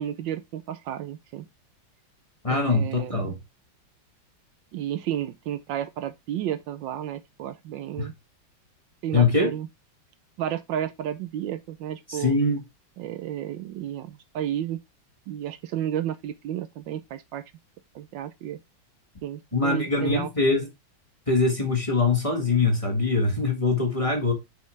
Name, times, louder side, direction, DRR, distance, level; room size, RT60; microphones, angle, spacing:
voice 1, 0.0-1.4 2.5-3.3 4.7-8.1 9.0-9.7 10.4-12.4 13.0-14.8 15.3-17.4 17.9-18.6 19.2-20.3, right 11 dB, 75° right, 1.2 m, -32 dB
voice 2, 2.4-3.4 8.0-8.1 9.1-9.5 12.1-12.6 19.5-20.7 21.3-24.3, left 3 dB, 20° left, 1.5 m, -23 dB
6.9 x 5.4 x 3.2 m
omnidirectional pair, 2.2 m